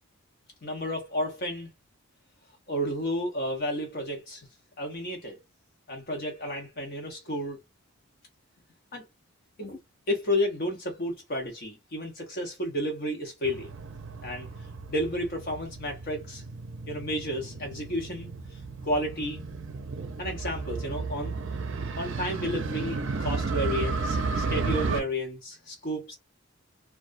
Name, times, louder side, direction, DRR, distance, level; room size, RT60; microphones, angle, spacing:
voice 1, 0.6-1.7 2.7-4.5 4.8-5.4 5.9-7.6 8.9-9.0 9.6-9.8 10.1-13.7 14.2-14.5 14.9-16.4 16.9-19.4 20.2-21.3 22.0-26.2, equal, 40° left, 0.6 m, -32 dB
Motorcycle, 13.4-25.0, right 4 dB, 55° right, 0.5 m, -33 dB
2.3 x 2.2 x 2.4 m
head